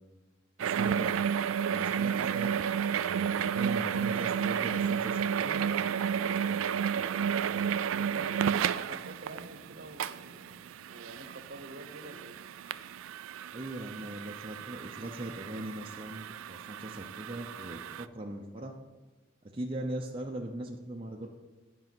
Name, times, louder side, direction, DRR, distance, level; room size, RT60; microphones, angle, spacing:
voice 1, 0.6-1.2 1.6-2.5 2.9-5.6 13.5-18.7 19.4-21.3, right 1 dB, 25° right, 0 dB, 0.6 m, -40 dB
sound 1, 0.6-18.1, right 7 dB, 85° right, 0.3 m, -32 dB
voice 2, 7.9-10.6 10.9-12.4, right 1 dB, 55° right, 7 dB, 1.0 m, -48 dB
9.5 x 5.5 x 6.0 m, 1.2 s
head